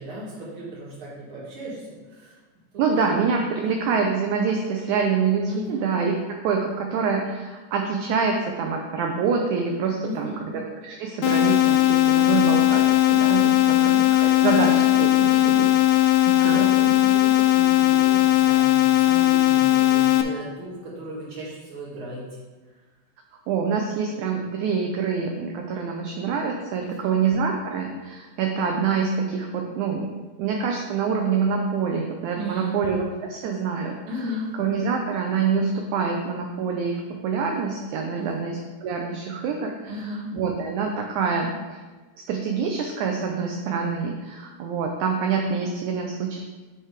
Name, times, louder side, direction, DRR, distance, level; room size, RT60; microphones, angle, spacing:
voice 1, 0.0-1.8 2.1-2.4 3.5-3.9 5.4-5.9 10.0-10.4 13.5-13.9 16.1-22.3 26.8-27.2 32.3-32.8 34.1-34.5 38.1-38.4 39.8-40.3, right 1 dB, 45° right, -6 dB, 2.4 m, -36 dB
voice 2, 2.8-17.0 23.5-30.1 30.4-34.0 34.6-41.8 42.3-46.4, right 5 dB, 75° right, 2 dB, 1.9 m, -26 dB
sound 1, 11.2-20.2, left 15 dB, 85° left, 1.6 m, -18 dB
10.0 x 3.3 x 4.8 m, 1.2 s
omnidirectional pair, 3.8 m